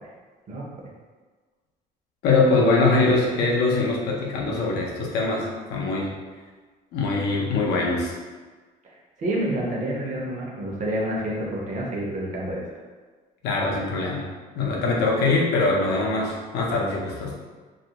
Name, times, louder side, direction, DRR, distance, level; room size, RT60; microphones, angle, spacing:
voice 1, 2.2-6.1 6.9-8.2 13.4-14.3 14.5-17.3, left 3 dB, 80° left, -2 dB, 0.6 m, -22 dB
voice 2, 9.2-12.6, right 1 dB, 45° right, -2 dB, 0.7 m, -28 dB
2.4 x 2.2 x 2.8 m, 1.4 s
cardioid pair, 110°, 17 cm